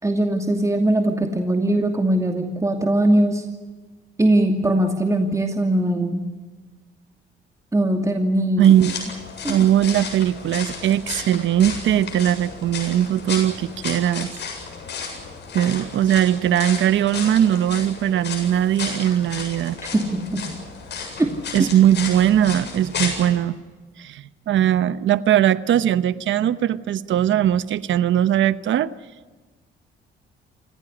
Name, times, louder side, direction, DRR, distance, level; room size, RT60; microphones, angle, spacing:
voice 1, 0.0-3.5 4.2-6.3 7.7-8.7 9.4-9.6 19.8-20.5 21.2-21.3 21.6-21.7, right 1 dB, 15° right, 4 dB, 2.6 m, -21 dB
sound 1, 8.6-23.3, left 5 dB, 60° left, 7.7 m, -33 dB
voice 2, 8.6-9.0 9.5-14.3 15.5-19.8 21.5-23.6 24.0-28.9, right 11 dB, 70° right, 15 dB, 1.0 m, -19 dB
28.5 x 16.0 x 9.8 m, 1.3 s
cardioid pair, 90°, 20 cm